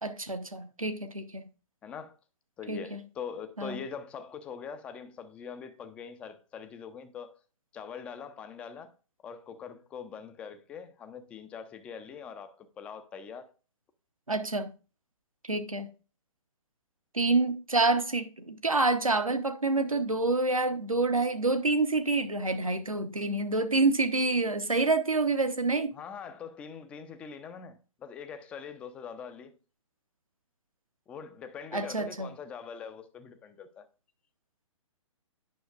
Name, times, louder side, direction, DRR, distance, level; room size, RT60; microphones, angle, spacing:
voice 1, 0.0-1.4 2.7-3.0 3.6-3.8 14.3-14.7 15.4-15.9 17.1-25.9 31.7-32.3, right 3 dB, 90° right, 0.8 m, -27 dB
voice 2, 1.8-2.2 2.6-7.4 7.7-8.9 9.2-13.5 25.9-29.6 31.1-33.9, left 6 dB, 5° left, 0.3 m, -43 dB
9.4 x 5.8 x 2.4 m
figure-of-eight pair, 125°, 17 cm